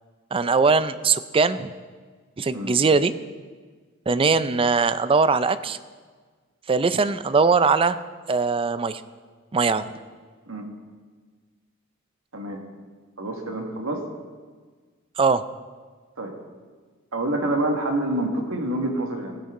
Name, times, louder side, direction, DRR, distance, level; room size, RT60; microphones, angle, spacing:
voice 1, 0.3-1.7 2.4-3.1 4.1-5.8 6.7-8.0 8.3-9.0 9.5-9.8 15.2-15.4, right 4 dB, 25° right, 13 dB, 0.4 m, -21 dB
voice 2, 13.2-14.0 16.2-16.4 17.1-19.4, right 1 dB, 90° right, 2 dB, 1.8 m, -27 dB
16.0 x 9.7 x 3.8 m, 1.5 s
head